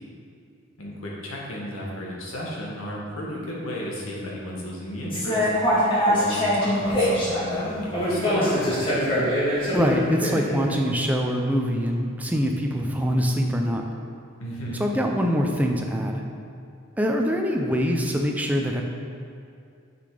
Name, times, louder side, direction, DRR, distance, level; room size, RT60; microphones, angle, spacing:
voice 1, 0.8-5.5 6.1-8.6 14.4-14.9, equal, 80° left, -3 dB, 1.7 m, -33 dB
sound 1, 5.1-10.7, equal, 25° left, 2.0 m, -23 dB
voice 2, 9.7-13.8 14.8-16.2 17.0-18.8, equal, 5° right, 1 dB, 0.6 m, -24 dB
6.8 x 6.1 x 5.0 m, 2.4 s
head